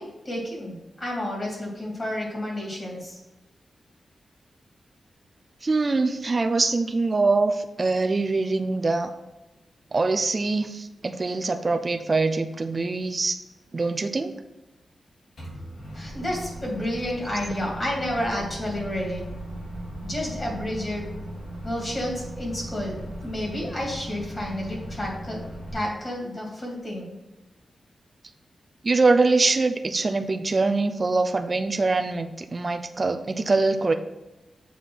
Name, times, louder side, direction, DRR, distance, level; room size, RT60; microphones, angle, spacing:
voice 1, 0.0-3.2 15.9-19.3 20.0-21.1 21.6-25.4 25.7-27.1, left 1 dB, 30° left, -2 dB, 2.4 m, -31 dB
voice 2, 5.6-9.1 9.9-13.4 13.7-14.3 28.8-33.9, right 3 dB, 30° right, 8 dB, 0.5 m, -23 dB
Microwave oven, 15.4-25.7, right 1 dB, 60° left, 2.9 m, -37 dB
6.9 x 4.7 x 5.7 m, 1.0 s
wide cardioid pair, 155°, 0 cm